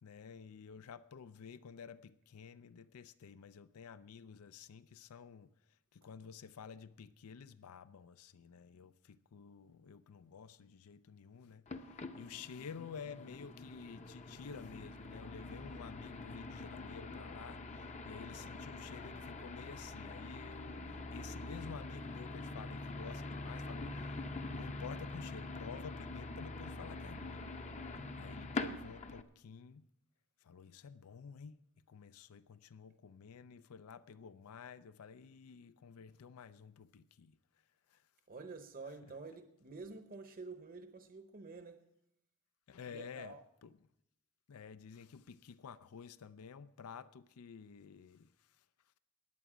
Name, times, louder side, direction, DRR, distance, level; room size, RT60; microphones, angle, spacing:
voice 1, 0.0-24.2 24.5-27.4 28.2-29.9 30.4-31.6 31.9-37.4 37.9-38.1 39.0-39.1 42.7-43.8 44.5-48.6, left 6 dB, 80° left, 0.5 m, -51 dB
sound 1, 11.7-29.2, left 2 dB, 30° left, 0.7 m, -45 dB
voice 2, 38.3-41.8 42.9-43.4, right 4 dB, 40° right, 0.8 m, -49 dB
20.0 x 8.1 x 4.9 m
head